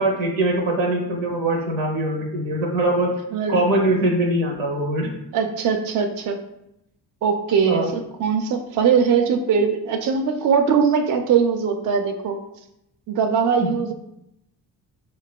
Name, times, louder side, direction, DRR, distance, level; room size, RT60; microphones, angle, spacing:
voice 1, 0.0-3.1 3.5-5.1 7.7-7.9 13.6-13.7, right 1 dB, 80° right, 0 dB, 0.9 m, -22 dB
voice 2, 3.3-3.6 5.3-6.4 7.2-12.4 13.1-13.9, right 6 dB, 45° right, 5 dB, 0.4 m, -21 dB
3.9 x 2.2 x 2.2 m, 0.82 s
hypercardioid pair, 50°, 48 cm